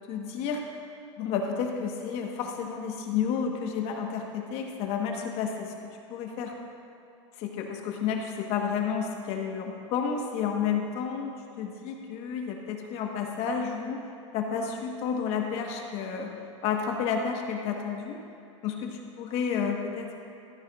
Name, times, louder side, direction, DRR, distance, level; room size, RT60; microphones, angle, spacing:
voice 1, 0.1-0.6 1.2-5.7 6.1-6.5 7.4-11.3 11.6-14.0 14.3-16.3 16.6-18.2 18.6-20.2, left 6 dB, 40° left, 2 dB, 1.2 m, -31 dB
14.0 x 9.5 x 2.4 m, 2.8 s
supercardioid pair, 145°, 16 cm